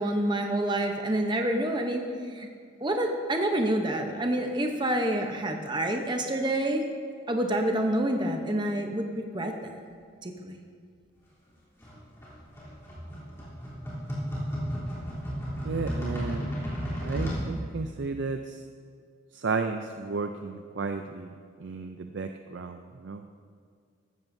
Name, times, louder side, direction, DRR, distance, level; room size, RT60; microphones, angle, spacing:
voice 1, 0.0-2.0 2.3-2.5 2.8-6.8 7.3-9.5 10.2-10.6, right 1 dB, 20° right, 3 dB, 0.8 m, -27 dB
sound 1, 11.8-17.4, equal, 15° left, 3.3 m, -33 dB
voice 2, 15.6-16.5 17.0-18.6 19.3-21.3 21.6-23.2, right 4 dB, 60° right, 6 dB, 0.4 m, -33 dB
14.5 x 13.5 x 2.7 m, 2.1 s
head